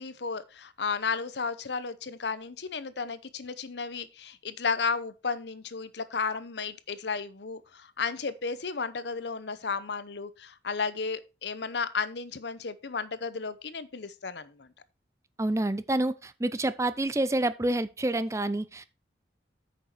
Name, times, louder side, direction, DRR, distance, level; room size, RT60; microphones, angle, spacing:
voice 1, 0.0-14.7, left 5 dB, 70° left, 0.8 m, -33 dB
voice 2, 15.4-18.8, right 1 dB, 15° right, 0.5 m, -28 dB
9.1 x 6.3 x 4.5 m
head